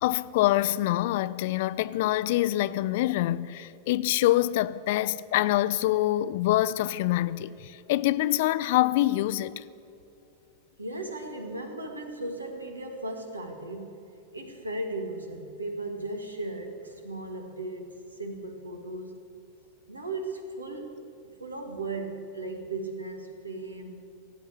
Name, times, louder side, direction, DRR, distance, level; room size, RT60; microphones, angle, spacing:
voice 1, 0.0-9.6, left 15 dB, 50° left, 0.4 m, -25 dB
voice 2, 10.8-14.0 14.3-19.2 19.9-21.0 21.4-24.1, right 2 dB, 80° right, 1.7 m, -36 dB
17.5 x 8.1 x 8.3 m
figure-of-eight pair, 90°, 0 cm